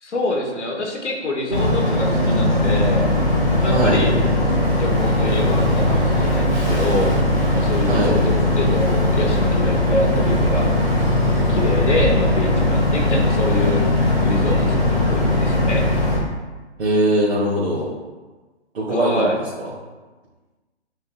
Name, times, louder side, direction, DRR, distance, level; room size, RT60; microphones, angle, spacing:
voice 1, 0.0-3.1 3.6-4.3 4.7-7.2 7.5-10.7 11.5-15.9 18.9-19.4, left 2 dB, 80° left, 1 dB, 1.1 m, -25 dB
Boat Water vehicle, 1.5-16.2, left 1 dB, 5° right, 0.4 m, -19 dB
voice 2, 3.6-4.0 7.9-8.1 16.8-17.9 18.7-19.2 19.6-19.7, right 1 dB, 65° right, -7 dB, 1.5 m, -20 dB
8.0 x 2.7 x 2.2 m, 1.3 s
hypercardioid pair, 140°, 34 cm